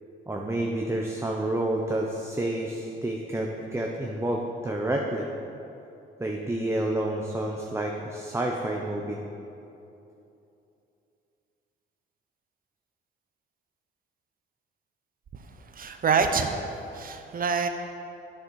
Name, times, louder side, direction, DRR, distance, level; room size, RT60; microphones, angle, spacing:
voice 1, 0.3-5.3 6.2-9.2, right 1 dB, 15° right, 0 dB, 0.9 m, -29 dB
voice 2, 15.7-16.5 16.9-17.7, right 5 dB, 45° right, 7 dB, 0.9 m, -25 dB
10.0 x 6.6 x 6.4 m, 2.8 s
cardioid pair, 90°, 20 cm